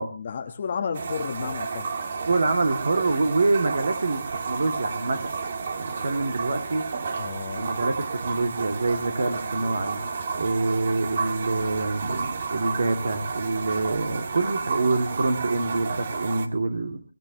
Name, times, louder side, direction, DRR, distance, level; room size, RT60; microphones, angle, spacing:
voice 1, 0.0-1.9 7.2-7.7, left 6 dB, 30° left, 5 dB, 1.2 m, -32 dB
sound 1, 0.9-16.5, right 5 dB, 35° right, 1.5 m, -31 dB
voice 2, 2.3-5.3 5.8-6.8 7.6-10.0 10.4-17.0, right 3 dB, 50° right, 6 dB, 2.4 m, -26 dB
23.0 x 17.5 x 3.0 m, 0.34 s
figure-of-eight pair, 170°, 0 cm